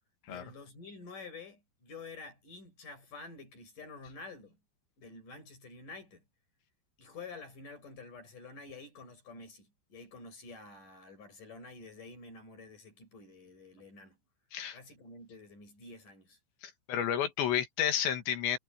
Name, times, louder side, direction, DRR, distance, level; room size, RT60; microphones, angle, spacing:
voice 1, 0.3-4.6 5.0-6.2 7.0-14.2 14.7-16.4, left 3 dB, 45° left, 8.6 m, -49 dB
voice 2, 16.9-18.6, left 9 dB, 85° left, 4.4 m, -30 dB
omnidirectional pair, 5.0 m